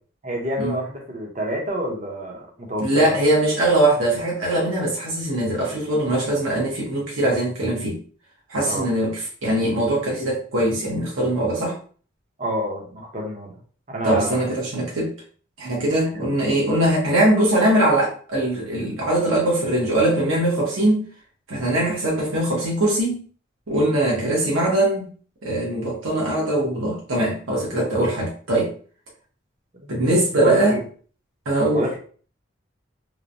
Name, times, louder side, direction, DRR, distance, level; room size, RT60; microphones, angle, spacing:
voice 1, 0.2-3.2 8.7-8.9 12.4-13.5 13.9-14.4 16.1-16.3 29.8-29.9 30.3-30.8 31.7-32.0, equal, 35° right, -1 dB, 0.8 m, -28 dB
voice 2, 2.8-8.0 8.5-11.8 14.0-15.1 15.6-21.1 21.5-23.2 23.7-25.1 25.4-28.7 29.9-30.8 31.5-31.9, right 1 dB, 90° right, -3 dB, 1.0 m, -21 dB
3.2 x 2.1 x 2.6 m, 0.42 s
head